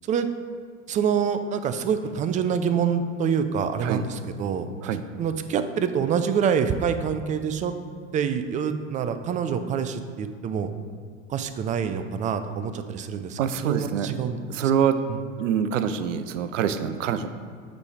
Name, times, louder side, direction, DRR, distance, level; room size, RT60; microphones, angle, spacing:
voice 1, 0.9-4.7 5.2-7.7 8.1-10.7 11.3-14.7 15.1-15.2, right 7 dB, 20° right, 9 dB, 0.4 m, -26 dB
voice 2, 13.4-14.1 14.5-14.9 15.4-17.3, right 8 dB, 75° right, 11 dB, 0.6 m, -25 dB
8.2 x 3.3 x 4.9 m, 2.2 s
hypercardioid pair, 85°, 38 cm